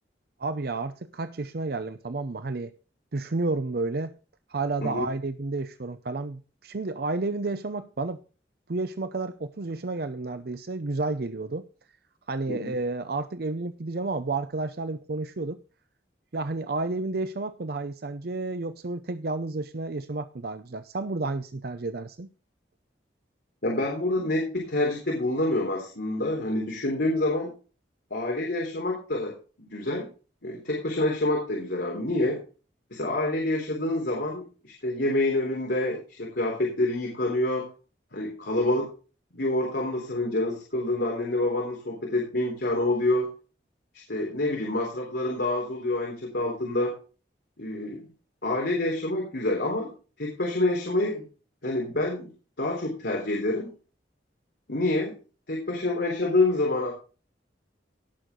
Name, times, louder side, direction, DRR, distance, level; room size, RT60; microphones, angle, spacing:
voice 1, 0.4-2.7 3.1-4.2 4.5-8.2 8.7-11.7 12.3-15.6 16.3-22.3, right 3 dB, 60° right, 0.6 m, -31 dB
voice 2, 23.6-27.5 28.1-30.1 30.4-32.4 32.9-37.7 38.1-38.9 39.3-43.3 44.1-46.9 47.6-48.0 48.4-51.2 51.6-52.3 52.6-53.7 54.7-55.1 55.5-56.9, left 2 dB, 70° left, 3.6 m, -27 dB
17.5 x 6.5 x 3.8 m
head